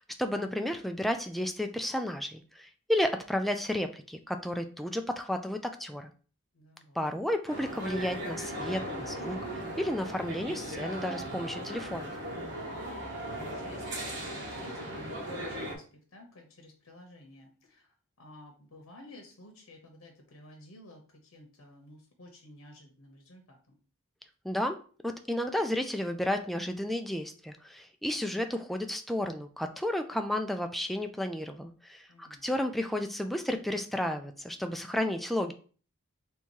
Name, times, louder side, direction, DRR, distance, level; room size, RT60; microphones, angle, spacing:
voice 1, 0.0-6.1 7.0-12.1 24.4-35.5, left 1 dB, ahead, 5 dB, 0.3 m, -32 dB
voice 2, 6.5-7.3 13.1-23.8 32.1-32.7, left 1 dB, 85° left, 2 dB, 0.9 m, -53 dB
sound 1, 7.5-15.7, equal, 55° right, 1.1 m, -37 dB
3.5 x 2.8 x 4.5 m, 0.40 s
head